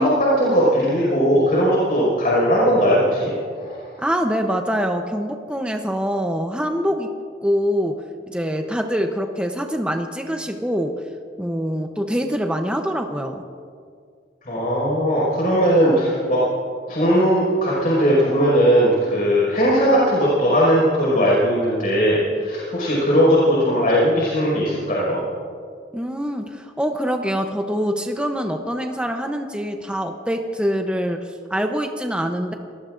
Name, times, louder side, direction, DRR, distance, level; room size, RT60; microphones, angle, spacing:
voice 1, 0.0-3.8 14.5-16.4 16.9-25.2, equal, 45° left, -6 dB, 5.3 m, -18 dB
voice 2, 4.0-7.1 7.4-11.0 11.4-13.4 25.9-32.5, equal, 5° right, 4 dB, 0.7 m, -24 dB
27.5 x 18.5 x 2.6 m, 2.2 s
head